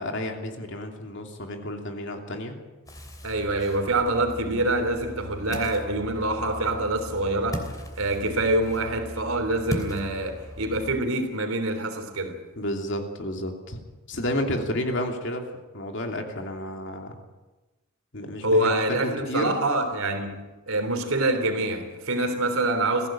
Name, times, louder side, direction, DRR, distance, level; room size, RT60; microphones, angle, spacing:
voice 1, 0.0-2.5 12.6-13.8 14.1-15.4 15.7-17.2 18.1-18.7 19.0-19.6, left 1 dB, 55° left, 2.8 m, -31 dB
Ocean, 2.9-11.0, equal, 15° left, 3.0 m, -38 dB
voice 2, 3.2-7.7 8.0-12.4 18.4-20.3 20.7-23.1, right 2 dB, 70° right, 3.5 m, -25 dB
21.5 x 16.0 x 9.0 m
head